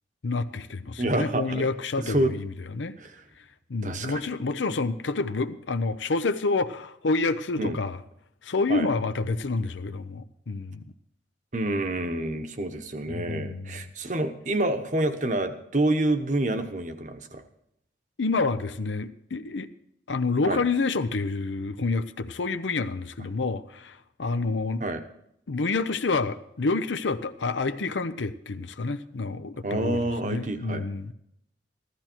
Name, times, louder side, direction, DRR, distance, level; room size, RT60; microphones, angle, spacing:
voice 1, 0.2-3.0 3.7-8.0 8.4-10.8 13.1-13.8 18.2-19.7 20.1-24.8 25.5-31.1, left 3 dB, 80° left, 10 dB, 0.7 m, -28 dB
voice 2, 1.0-1.7 2.0-2.3 3.0-3.2 3.8-4.2 7.6-7.8 8.7-8.9 11.5-17.4 20.5-20.6 24.8-25.0 29.6-30.8, right 1 dB, 40° right, 8 dB, 1.1 m, -28 dB
15.0 x 13.0 x 4.5 m, 0.76 s
head